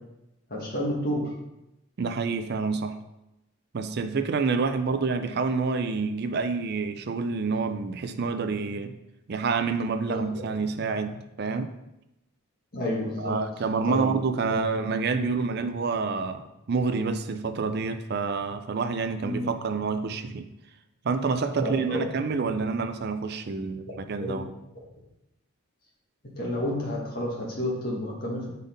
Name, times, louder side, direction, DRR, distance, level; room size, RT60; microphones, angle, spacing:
voice 1, 0.5-1.2 10.1-10.2 12.7-13.3 13.9-14.1 14.4-14.5 19.2-19.5 21.6-22.0 24.2-24.3 26.4-28.5, left 1 dB, 40° left, -3 dB, 1.6 m, -30 dB
voice 2, 2.0-3.0 3.7-9.0 9.3-11.7 13.2-20.5 21.0-24.5, right 4 dB, 45° right, 9 dB, 0.4 m, -28 dB
5.3 x 4.1 x 5.1 m, 0.91 s
head